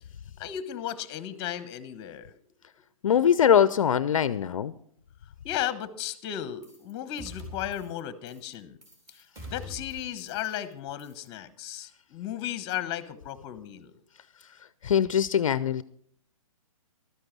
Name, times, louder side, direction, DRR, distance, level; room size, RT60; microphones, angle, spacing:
voice 1, 0.4-2.3 5.4-8.8 9.1-13.9, left 11 dB, 25° left, 1.1 m, -35 dB
voice 2, 3.0-4.7 14.8-15.8, left 8 dB, 65° left, 0.6 m, -22 dB
sound 1, 6.6-6.9 7.2-8.0 8.3-8.5 8.8-10.7 11.0-11.3, left 1 dB, 20° right, 3.6 m, -44 dB
13.0 x 9.9 x 6.1 m
hypercardioid pair, 135°, 18 cm